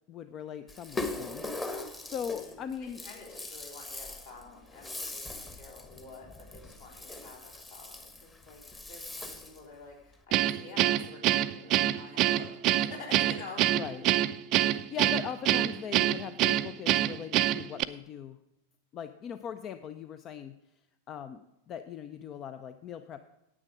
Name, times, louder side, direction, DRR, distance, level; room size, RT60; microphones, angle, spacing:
voice 1, 0.1-3.0 13.7-14.1 14.6-18.4 18.9-20.6 21.1-23.2, left 8 dB, 30° left, 10 dB, 0.5 m, -40 dB
Rattle (instrument), 0.7-9.7, left 2 dB, 15° left, 1.2 m, -41 dB
voice 2, 2.1-2.5 2.8-8.6 8.9-12.5 12.8-13.6, left 3 dB, 60° left, -2 dB, 4.2 m, -48 dB
Guitar, 10.3-17.8, right 14 dB, 40° right, 0.4 m, -26 dB
9.8 x 9.0 x 4.7 m, 0.91 s
figure-of-eight pair, 90°, 0 cm